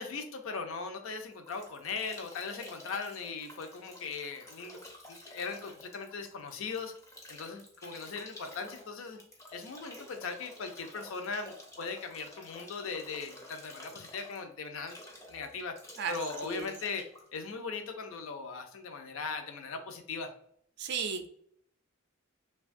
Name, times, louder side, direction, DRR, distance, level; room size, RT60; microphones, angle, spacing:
voice 1, 0.0-4.8 5.1-6.9 7.3-9.2 9.5-15.0 15.3-15.8 16.1-20.3, left 4 dB, 70° left, 6 dB, 0.5 m, -39 dB
Bathtub (filling or washing) / Drip / Trickle dribble, 1.0-18.3, left 1 dB, 15° left, 0.4 m, -51 dB
voice 2, 20.8-21.3, right 6 dB, 55° right, 8 dB, 0.4 m, -34 dB
3.0 x 2.3 x 2.5 m, 0.67 s
head